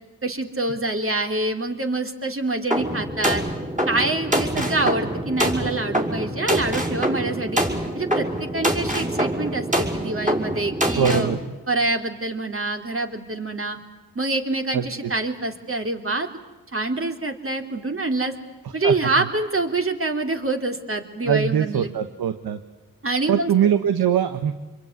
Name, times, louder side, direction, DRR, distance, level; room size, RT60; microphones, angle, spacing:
voice 1, 0.2-3.4 3.9-7.6 7.9-11.3 11.7-13.8 14.1-16.3 16.7-18.3 18.7-21.9 23.0-23.5, right 2 dB, 35° right, 5 dB, 3.3 m, -26 dB
sound 1, 2.7-11.4, right 1 dB, 20° right, 5.9 m, -25 dB
voice 2, 11.0-11.4 14.7-14.8 18.8-19.1 21.2-22.6 23.3-24.5, right 8 dB, 85° right, 10 dB, 1.2 m, -21 dB
27.5 x 22.5 x 9.6 m, 1.1 s
cardioid pair, 50°, 36 cm